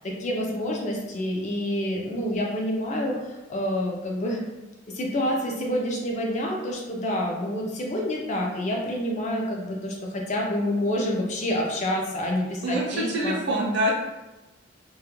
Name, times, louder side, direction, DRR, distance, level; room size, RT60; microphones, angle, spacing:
voice 1, 0.0-4.4 4.9-13.4, left 1 dB, 35° left, 0 dB, 0.4 m, -28 dB
voice 2, 12.6-13.9, right 1 dB, 55° right, -2 dB, 0.5 m, -25 dB
2.2 x 2.1 x 3.0 m, 1.0 s
head